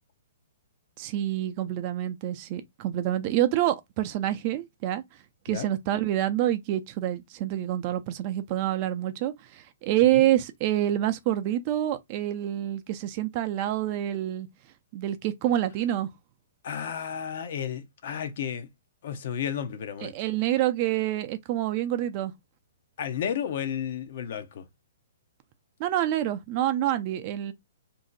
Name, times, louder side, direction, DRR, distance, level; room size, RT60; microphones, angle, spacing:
voice 1, 1.0-5.0 5.4-14.5 14.9-16.1 20.0-22.3 25.8-27.5, right 13 dB, 40° right, 0.5 m, -27 dB
voice 2, 16.6-18.7 19.0-20.1 23.0-24.7, left 8 dB, 60° left, 0.6 m, -32 dB
2.6 x 2.1 x 3.8 m
hypercardioid pair, 135°, 0 cm